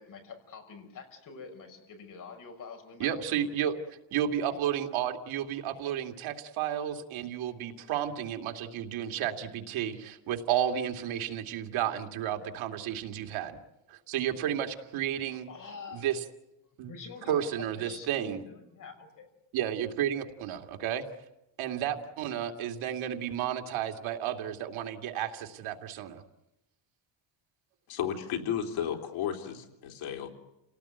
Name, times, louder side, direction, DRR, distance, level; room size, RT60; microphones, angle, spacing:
voice 1, 0.0-3.5 15.3-16.1 16.6-19.3, left 5 dB, 40° left, 4 dB, 6.2 m, -46 dB
voice 2, 3.0-13.6 13.9-15.5 15.9-16.2 16.8-16.9 17.3-18.4 19.5-21.0 21.6-26.2, right 10 dB, 80° right, 4 dB, 2.6 m, -32 dB
voice 3, 27.9-30.3, left 9 dB, 80° left, 2 dB, 3.6 m, -33 dB
29.5 x 18.5 x 9.4 m, 0.92 s
cardioid pair, 170°, 48 cm